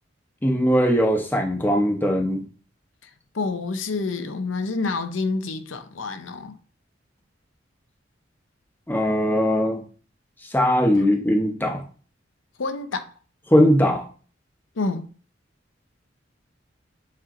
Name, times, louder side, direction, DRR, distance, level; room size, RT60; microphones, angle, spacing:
voice 1, 0.4-2.4 8.9-9.8 10.5-11.8 13.5-14.0, equal, 10° left, 0.6 m, -20 dB
voice 2, 3.3-6.6 12.6-13.1 14.8-15.1, left 3 dB, 90° left, 0.6 m, -28 dB
7.3 x 2.8 x 2.5 m
head